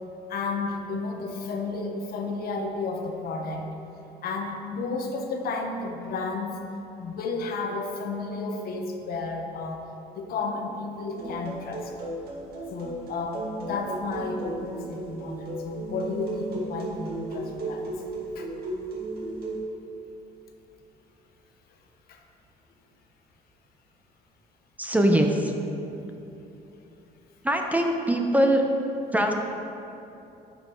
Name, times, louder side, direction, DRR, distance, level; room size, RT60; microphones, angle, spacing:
voice 1, 0.3-3.7 4.2-6.6 7.0-9.8 10.1-11.9 12.7-17.9 18.3-18.5 22.1-22.2, left 3 dB, 65° left, 3 dB, 1.0 m, -32 dB
sound 1, 11.1-19.6, right 2 dB, 65° right, 1.7 m, -35 dB
voice 2, 24.8-25.5 27.4-28.7 29.1-29.3, right 1 dB, 10° right, 2 dB, 0.6 m, -22 dB
9.5 x 5.3 x 4.5 m, 2.9 s
cardioid pair, 110°, 17 cm